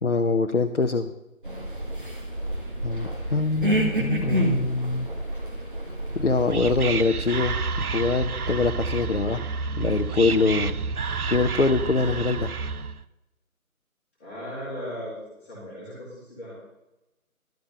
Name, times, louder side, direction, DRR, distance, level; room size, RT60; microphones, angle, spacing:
voice 1, 0.0-1.1 2.8-5.1 6.1-9.4 9.8-10.7 11.3-12.5, left 3 dB, 55° left, 5 dB, 0.8 m, -24 dB
sound 1, 1.4-6.9, right 1 dB, 35° right, 1.7 m, -29 dB
Whispering, 6.1-13.0, right 4 dB, 85° right, 0.7 m, -30 dB
voice 2, 14.2-16.6, equal, 10° left, -12 dB, 2.9 m, -37 dB
12.0 x 5.3 x 8.1 m, 0.95 s
figure-of-eight pair, 170°, 43 cm